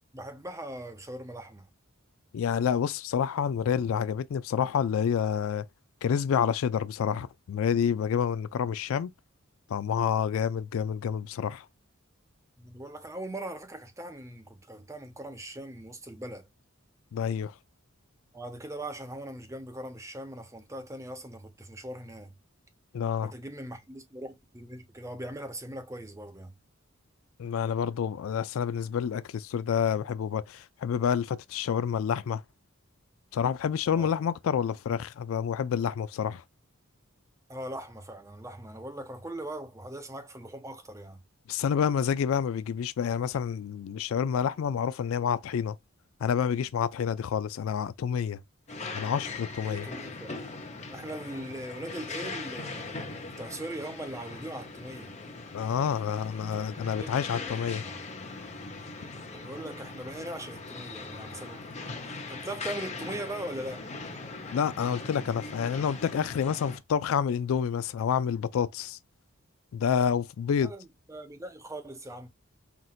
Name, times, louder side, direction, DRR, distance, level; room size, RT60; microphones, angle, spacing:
voice 1, 0.1-1.7 12.6-16.5 18.3-22.3 23.2-26.5 33.9-34.1 37.5-41.2 49.6-50.5 50.9-55.1 56.8-57.6 59.4-61.6 62.1-63.8 70.6-72.3, right 1 dB, 15° right, 0.8 m, -40 dB
voice 2, 2.3-5.6 6.0-9.1 9.7-11.7 17.1-17.5 22.9-23.3 27.4-32.4 33.3-36.4 41.5-45.8 46.2-48.4 48.9-49.9 55.5-57.8 64.5-69.0 69.7-70.7, left 7 dB, 70° left, 0.3 m, -28 dB
sound 1, 48.7-66.8, left 3 dB, 35° left, 0.9 m, -40 dB
5.9 x 2.6 x 2.4 m
head